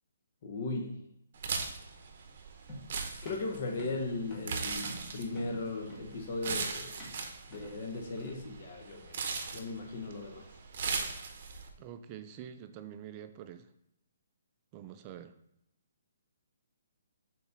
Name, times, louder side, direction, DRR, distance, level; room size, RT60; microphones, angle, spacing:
voice 1, 0.4-0.9 3.2-7.0 7.5-9.3 9.5-10.5, left 3 dB, 40° left, 1 dB, 0.8 m, -37 dB
sound 1, 1.4-11.7, right 5 dB, 40° right, 0.8 m, -39 dB
Walking Up Wooden Steps, 2.7-8.5, equal, 15° left, 1.1 m, -48 dB
voice 2, 11.8-13.7 14.7-15.4, right 9 dB, 20° right, 9 dB, 0.3 m, -46 dB
4.6 x 4.0 x 5.2 m, 0.80 s
hypercardioid pair, 170°, 0 cm